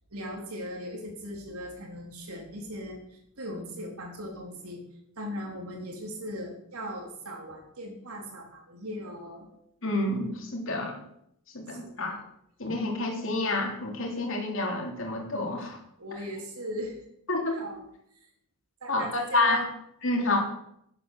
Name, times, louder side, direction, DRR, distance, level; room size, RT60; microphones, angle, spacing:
voice 1, 0.1-4.8 5.2-9.5 11.7-12.2 15.6-15.7 16.0-17.1 17.5-17.8 18.1-18.2 18.8-19.7 20.3-20.4, equal, 85° right, 1 dB, 3.8 m, -38 dB
voice 2, 9.8-10.9 11.5-12.2 12.6-15.8 17.3-17.6 18.9-19.6 20.0-20.4, left 2 dB, 60° left, 1 dB, 3.2 m, -28 dB
11.5 x 9.7 x 6.8 m, 0.75 s
head